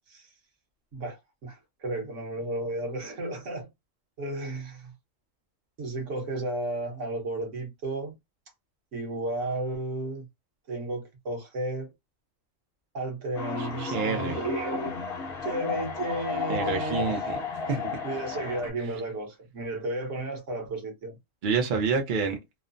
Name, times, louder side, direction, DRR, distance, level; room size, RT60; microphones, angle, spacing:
voice 1, 0.9-3.7 4.2-4.9 5.8-8.1 8.9-10.3 10.7-11.9 12.9-15.0 15.4-17.4 18.0-21.2, right 1 dB, 65° right, 1.4 m, -33 dB
sound 1, 13.4-18.7, left 5 dB, 50° left, 0.9 m, -33 dB
voice 2, 13.6-14.4 16.5-17.4 17.7-18.0 21.4-22.4, right 5 dB, 50° right, 0.7 m, -28 dB
3.1 x 2.0 x 2.5 m
omnidirectional pair, 1.4 m